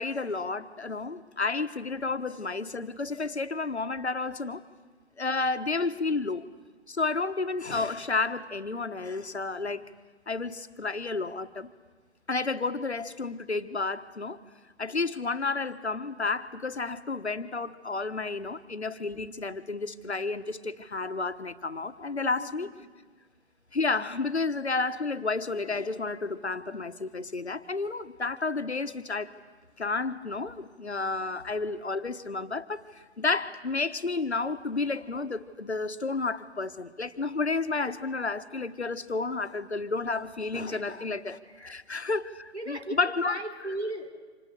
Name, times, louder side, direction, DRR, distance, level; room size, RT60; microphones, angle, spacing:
voice 1, 0.0-4.6 5.2-6.5 6.9-9.9 10.3-11.7 12.3-14.4 14.8-22.7 23.7-29.3 29.8-43.4, left 3 dB, 80° left, 10 dB, 1.4 m, -31 dB
voice 2, 22.2-22.9 40.7-40.8 41.4-41.8 42.5-43.0 43.2-44.1, right 1 dB, 85° right, 5 dB, 3.9 m, -37 dB
28.0 x 26.5 x 6.7 m, 1.4 s
figure-of-eight pair, 135°, 33 cm